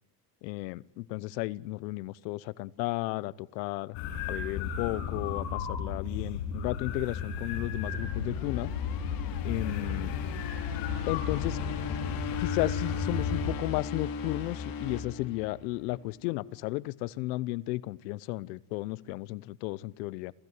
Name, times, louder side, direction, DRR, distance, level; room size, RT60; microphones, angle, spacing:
voice 1, 0.4-4.0 4.3-8.7 9.4-10.1 11.1-11.6 12.4-20.3, left 20 dB, 90° left, 22 dB, 1.0 m, -34 dB
sound 1, 3.9-13.5, left 6 dB, 65° left, 6.2 m, -34 dB
sound 2, 7.6-15.9, left 6 dB, 45° left, 3.8 m, -37 dB
27.5 x 17.0 x 9.6 m, 0.79 s
cardioid pair, 140°, 49 cm